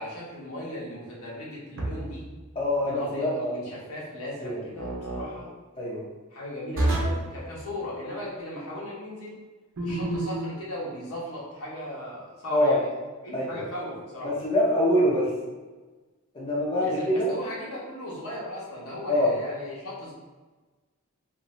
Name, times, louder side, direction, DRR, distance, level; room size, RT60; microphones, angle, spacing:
voice 1, 0.0-2.3 2.8-5.5 6.3-9.4 9.8-12.9 13.2-14.3 16.8-20.1, left 1 dB, 75° left, -5 dB, 0.9 m, -37 dB
sound 1, 1.8-2.3 4.8-5.3 6.8-7.3 9.8-10.5, right 1 dB, 60° right, 0.7 m, -28 dB
voice 2, 2.5-3.5 4.4-4.6 5.8-6.0 12.5-12.8 13.3-13.6 14.2-15.3 16.3-17.3 19.1-19.3, left 1 dB, 25° left, -6 dB, 0.6 m, -24 dB
2.6 x 2.5 x 3.0 m, 1.3 s
head